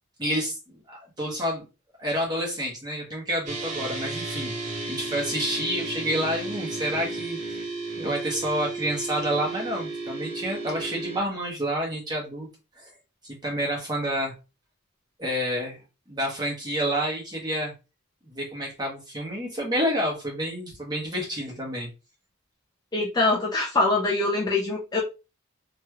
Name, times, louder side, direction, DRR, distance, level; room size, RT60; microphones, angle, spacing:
voice 1, 0.2-1.7 2.0-4.5 4.9-7.6 8.0-12.5 12.8-12.9 13.2-14.3 15.2-15.8 16.1-17.7 18.2-21.9, equal, 20° right, -2 dB, 1.1 m, -29 dB
sound 1, 3.5-11.2, right 2 dB, 35° right, 0.7 m, -33 dB
voice 2, 22.9-25.0, left 2 dB, 20° left, -3 dB, 0.5 m, -24 dB
3.0 x 2.9 x 2.3 m, 0.29 s
head